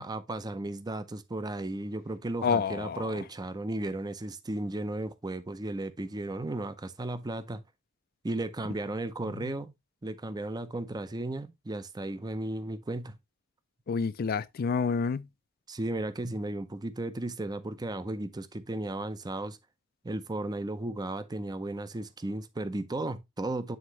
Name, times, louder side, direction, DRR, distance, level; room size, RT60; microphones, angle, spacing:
voice 1, 0.0-7.6 8.2-9.7 10.0-13.2 15.7-19.6 20.0-23.8, right 2 dB, 20° right, 0.5 m, -35 dB
voice 2, 2.4-3.1 9.4-9.5 13.9-15.3, left 5 dB, 45° left, 0.4 m, -29 dB
9.4 x 3.6 x 3.0 m
head